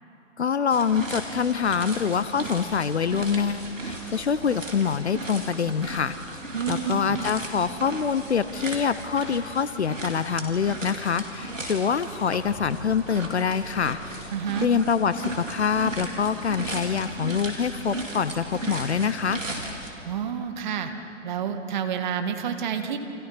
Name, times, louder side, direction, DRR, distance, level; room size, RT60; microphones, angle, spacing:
voice 1, 0.4-6.1 6.7-14.3 14.6-19.4, left 6 dB, 60° left, 14 dB, 0.9 m, -25 dB
sound 1, 0.7-19.9, right 1 dB, 80° right, 4.2 m, -36 dB
voice 2, 6.5-7.2 14.3-14.7 20.0-20.9 21.2-23.0, right 8 dB, 35° right, 6 dB, 1.8 m, -29 dB
29.5 x 27.0 x 5.7 m, 3.0 s
figure-of-eight pair, 130°, 38 cm